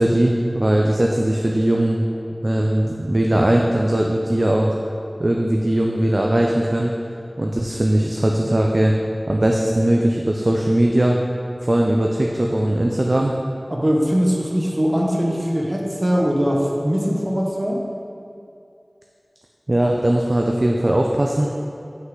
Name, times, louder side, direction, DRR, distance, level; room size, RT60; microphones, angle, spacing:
voice 1, 0.0-2.0 2.4-4.8 5.2-6.9 7.4-8.9 9.3-11.2 11.6-13.3 19.7-21.5, right 1 dB, 50° right, 0 dB, 0.4 m, -19 dB
voice 2, 13.7-17.8, equal, 35° right, -2 dB, 0.9 m, -21 dB
5.8 x 5.5 x 3.8 m, 2.4 s
wide cardioid pair, 45°, 0 cm